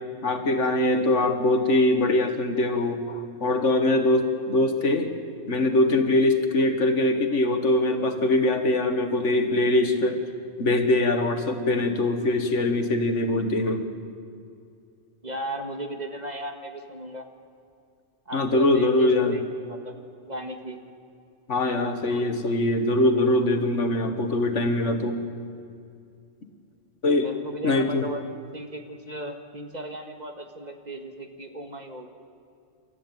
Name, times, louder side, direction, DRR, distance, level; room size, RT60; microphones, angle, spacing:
voice 1, 0.2-5.1 5.5-10.2 10.6-13.9 18.3-19.4 21.5-25.2 27.0-27.3 27.6-28.0, left 2 dB, 80° left, 7 dB, 2.0 m, -22 dB
voice 2, 15.2-17.3 18.3-20.8 27.2-28.2 28.5-32.1, right 1 dB, 35° right, 5 dB, 1.8 m, -36 dB
28.5 x 13.5 x 9.0 m, 2.4 s
omnidirectional pair, 1.2 m